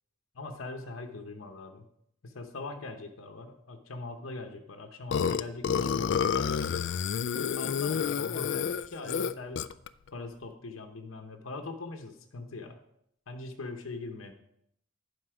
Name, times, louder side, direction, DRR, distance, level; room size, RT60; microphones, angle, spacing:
voice 1, 0.3-1.8 2.2-6.9 7.6-9.7 10.1-12.8 13.3-14.3, left 3 dB, 85° left, 5 dB, 0.9 m, -42 dB
Burping eructation, 5.1-9.9, left 7 dB, 65° left, 0.3 m, -29 dB
11.0 x 5.3 x 4.9 m, 0.75 s
head